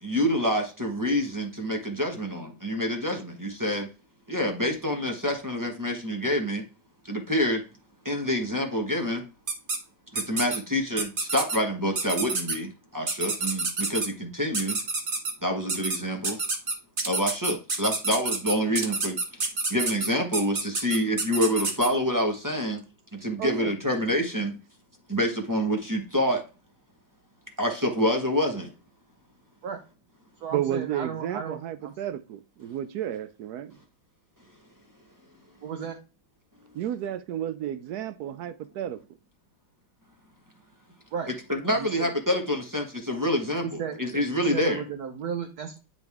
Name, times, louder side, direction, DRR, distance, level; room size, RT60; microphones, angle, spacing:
voice 1, 0.0-3.9 4.3-6.7 7.1-7.6 8.0-9.2 10.1-14.8 15.4-16.4 17.1-19.2 19.7-22.8 23.1-24.5 25.1-26.4 27.6-28.7 41.5-44.8, equal, 15° right, 0.8 m, -27 dB
sound 1, 9.5-9.8 10.2-10.6 11.0-11.6 12.0-12.6 13.1-14.1 14.5-15.3 15.7-16.0 16.2-21.9, right 3 dB, 35° right, 0.9 m, -28 dB
voice 2, 23.4-23.7 29.6-29.8 30.4-31.9 35.6-36.0 41.1-41.3 41.8-42.1 43.6-44.0 44.3-45.8, right 7 dB, 60° right, 1.2 m, -34 dB
voice 3, 30.5-33.8 36.7-39.0, right 10 dB, 80° right, 0.9 m, -32 dB
9.7 x 4.1 x 3.5 m
omnidirectional pair, 2.2 m